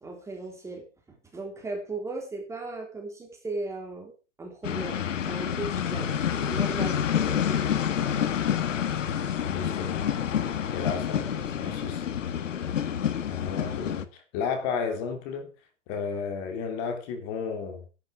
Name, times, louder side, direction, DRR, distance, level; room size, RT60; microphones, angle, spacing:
voice 1, 0.0-4.1 4.4-8.0, right 3 dB, 10° right, 3.1 m, -37 dB
sound 1, 4.6-14.0, left 9 dB, 85° left, 2.0 m, -28 dB
voice 2, 9.5-10.1 10.7-12.1 13.3-15.5 15.9-17.8, left 6 dB, 35° left, 3.6 m, -33 dB
13.5 x 11.5 x 5.1 m
hypercardioid pair, 155°, 37 cm